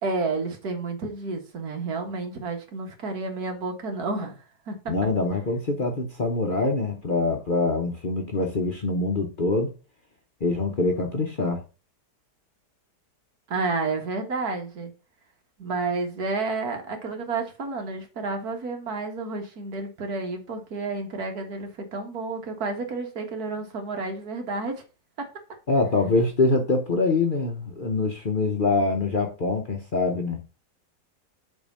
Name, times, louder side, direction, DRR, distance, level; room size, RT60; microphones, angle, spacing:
voice 1, 0.0-4.4 4.7-4.9 13.5-14.9 15.6-24.8 25.2-25.3, right 3 dB, 65° right, 2.0 m, -30 dB
voice 2, 4.9-9.7 10.4-11.6 25.7-30.4, left 3 dB, 40° left, 0.9 m, -24 dB
7.1 x 3.5 x 5.4 m
omnidirectional pair, 1.7 m